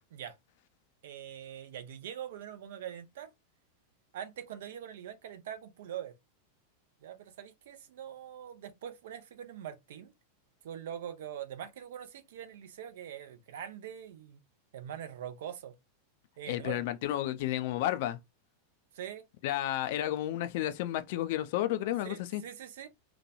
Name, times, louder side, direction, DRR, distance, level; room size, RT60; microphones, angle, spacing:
voice 1, 1.0-3.3 4.1-6.1 7.0-10.1 10.6-14.4 14.7-15.7 16.4-16.9 18.9-19.2 22.0-22.9, right 9 dB, 55° right, 0.5 m, -43 dB
voice 2, 16.5-18.2 19.4-22.4, left 13 dB, 50° left, 0.4 m, -32 dB
2.9 x 2.2 x 2.6 m
figure-of-eight pair, 90°, 0 cm